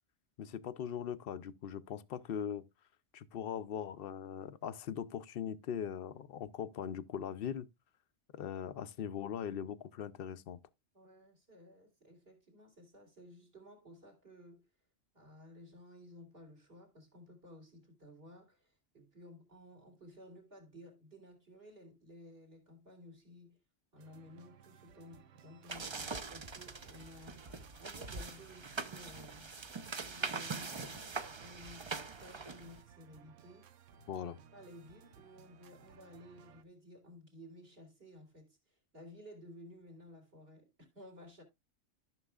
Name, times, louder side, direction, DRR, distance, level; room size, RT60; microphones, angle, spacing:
voice 1, 0.4-2.6 3.1-7.7 8.3-10.6 34.1-34.4, left 8 dB, 60° left, 0.7 m, -40 dB
voice 2, 10.9-14.6 15.1-23.6 23.9-27.5 27.8-29.5 30.0-31.1 31.4-31.9 32.2-33.6 34.5-41.4, left 1 dB, 50° right, 3.3 m, -55 dB
sound 1, 24.0-36.6, right 9 dB, 80° right, 1.1 m, -60 dB
sound 2, 25.7-32.8, right 4 dB, 30° right, 0.5 m, -43 dB
13.5 x 6.0 x 2.4 m
omnidirectional pair, 1.3 m